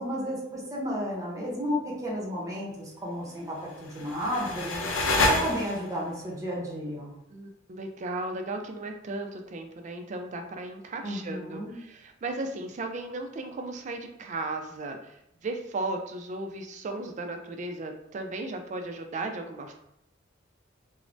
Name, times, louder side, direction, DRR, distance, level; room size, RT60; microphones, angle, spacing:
voice 1, 0.0-4.8 5.2-7.1 11.0-11.8, equal, 15° right, -4 dB, 0.7 m, -33 dB
sound 1, 3.7-6.1, left 2 dB, 90° left, 0.5 m, -28 dB
voice 2, 7.3-19.7, right 2 dB, 40° right, 5 dB, 0.3 m, -36 dB
3.1 x 2.0 x 2.5 m, 0.78 s
head